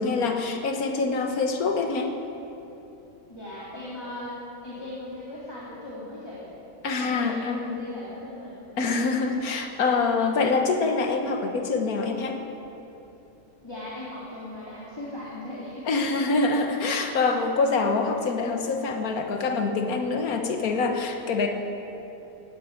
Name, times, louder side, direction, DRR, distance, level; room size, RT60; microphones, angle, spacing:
voice 1, 0.0-2.1 6.8-7.8 8.8-12.4 15.9-21.5, left 4 dB, 70° left, 4 dB, 1.7 m, -25 dB
voice 2, 3.3-4.4 4.6-6.5 7.0-8.9 13.6-15.9, left 2 dB, 15° left, -8 dB, 2.7 m, -38 dB
17.5 x 9.8 x 8.4 m, 2.9 s
omnidirectional pair, 1.6 m